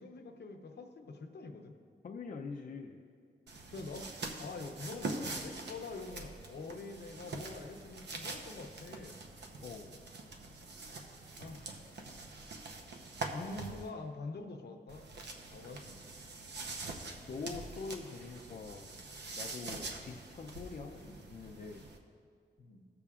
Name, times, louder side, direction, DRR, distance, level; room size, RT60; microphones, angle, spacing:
voice 1, 0.0-1.8 3.7-9.2 11.4-11.9 13.3-15.1 15.5-16.2 19.6-19.9 21.1-21.2 22.6-22.8, left 3 dB, 70° left, 4 dB, 0.8 m, -46 dB
voice 2, 2.0-3.0 9.6-10.0 17.3-19.0 19.3-21.8, left 4 dB, 50° left, 0 dB, 0.5 m, -44 dB
sound 1, 3.5-13.9 14.9-22.0, right 3 dB, 80° right, 0.8 m, -44 dB
16.0 x 6.9 x 2.4 m, 2.3 s
wide cardioid pair, 135°, 18 cm